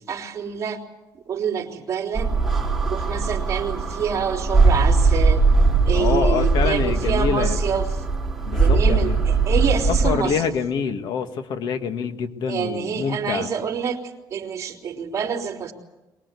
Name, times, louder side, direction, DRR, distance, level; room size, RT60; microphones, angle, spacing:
voice 1, 0.1-0.8 1.3-2.3 2.9-5.4 5.9-7.9 8.6-10.3 12.5-14.0 14.3-15.7, right 6 dB, 40° right, 0 dB, 3.7 m, -27 dB
sound 1, 2.1-10.1, right 3 dB, ahead, 4.6 m, -20 dB
voice 2, 5.9-7.6 8.5-9.2 9.9-13.5, left 6 dB, 70° left, 8 dB, 1.8 m, -26 dB
23.5 x 21.0 x 8.4 m, 1.0 s
cardioid pair, 150°, 8 cm